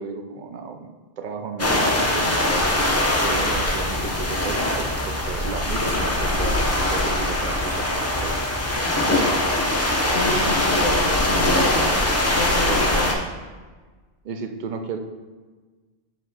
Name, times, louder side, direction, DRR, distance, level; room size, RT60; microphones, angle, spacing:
voice 1, 0.0-2.7 3.2-6.6 6.9-8.5 12.7-13.1 14.2-15.0, right 5 dB, 55° right, 5 dB, 0.6 m, -34 dB
sound 1, 1.6-13.1, left 1 dB, 20° left, 0.4 m, -22 dB
voice 2, 10.1-12.0 12.3-13.1, left 2 dB, 65° left, 1 dB, 1.1 m, -29 dB
7.2 x 3.5 x 3.9 m, 1.3 s
omnidirectional pair, 1.2 m